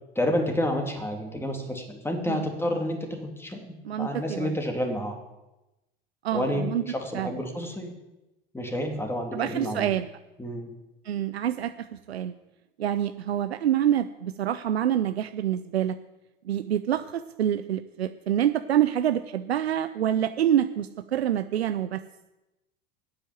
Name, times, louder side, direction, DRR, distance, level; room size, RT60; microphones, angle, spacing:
voice 1, 0.2-5.2 6.3-8.0 8.5-9.9 10.4-10.7, left 1 dB, 10° left, 3 dB, 2.4 m, -30 dB
voice 2, 3.8-4.6 6.2-6.8 7.1-7.4 9.3-10.1 11.0-12.3 12.8-16.0 16.4-22.0, right 10 dB, 80° right, 11 dB, 0.5 m, -26 dB
9.8 x 8.9 x 6.9 m, 0.99 s
figure-of-eight pair, 70°, 31 cm